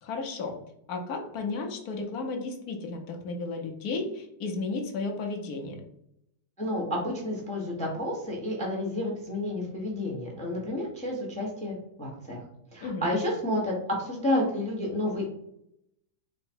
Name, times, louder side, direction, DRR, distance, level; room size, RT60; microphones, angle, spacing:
voice 1, 0.0-0.5 0.9-5.8 12.8-13.1, left 3 dB, 65° left, 2 dB, 1.0 m, -33 dB
voice 2, 6.6-12.4 12.7-15.3, left 1 dB, 10° left, -1 dB, 0.5 m, -30 dB
4.7 x 2.2 x 4.4 m, 0.75 s
omnidirectional pair, 2.2 m